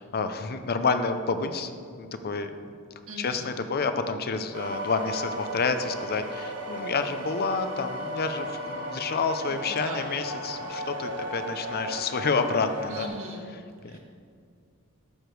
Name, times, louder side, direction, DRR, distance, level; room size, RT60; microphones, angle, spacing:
voice 1, 0.0-1.7 2.0-2.5 3.2-13.1 13.8-14.0, left 4 dB, 45° left, 9 dB, 0.6 m, -29 dB
voice 2, 3.1-3.5 9.5-10.0 12.9-13.4 13.8-14.0, right 1 dB, 70° right, -2 dB, 1.9 m, -39 dB
sound 1, 4.5-13.1, equal, 90° right, 1.4 m, -35 dB
12.0 x 6.7 x 4.6 m, 2.3 s
head